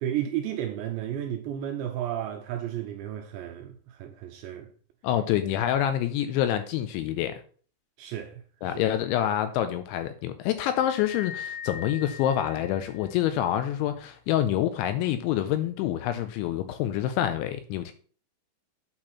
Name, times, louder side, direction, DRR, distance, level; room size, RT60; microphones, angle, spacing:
voice 1, 0.0-4.7 8.0-8.8, right 11 dB, 80° right, 2.6 m, -33 dB
voice 2, 5.0-7.4 8.6-17.9, left 11 dB, 85° left, 2.7 m, -27 dB
sound 1, 10.7-13.4, left 7 dB, 65° left, 2.8 m, -41 dB
8.8 x 4.4 x 5.6 m
omnidirectional pair, 5.7 m